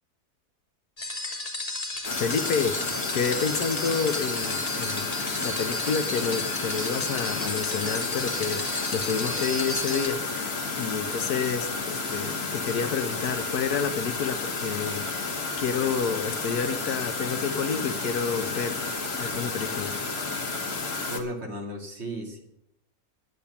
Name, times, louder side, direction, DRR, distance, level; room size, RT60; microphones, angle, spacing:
sound 1, 1.0-10.1, left 2 dB, 25° left, 1.6 m, -33 dB
sound 2, 2.0-21.2, left 3 dB, 40° left, 1.6 m, -31 dB
voice 1, 2.2-15.3 15.6-18.8 19.2-20.0, left 6 dB, 75° left, 9 dB, 1.4 m, -29 dB
voice 2, 21.1-22.4, right 1 dB, 40° right, 2 dB, 2.5 m, -35 dB
10.5 x 9.7 x 7.0 m, 0.77 s
omnidirectional pair, 1.7 m